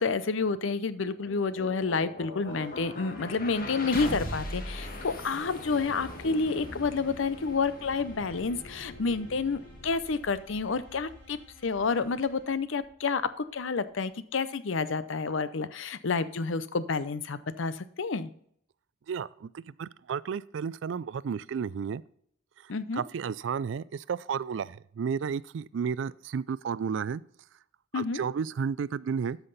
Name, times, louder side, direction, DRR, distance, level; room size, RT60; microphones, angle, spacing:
voice 1, 0.0-11.4 11.6-18.3 22.7-23.0 27.9-28.2, left 4 dB, 70° left, 14 dB, 0.6 m, -29 dB
sound 1, 0.9-13.0, left 1 dB, 45° left, 1.6 m, -41 dB
sound 2, 2.5-12.8, equal, 10° left, 4.3 m, -58 dB
voice 2, 19.1-22.0 22.9-27.2 27.9-29.4, right 6 dB, 60° right, 19 dB, 0.3 m, -32 dB
13.0 x 5.8 x 4.0 m, 0.66 s
head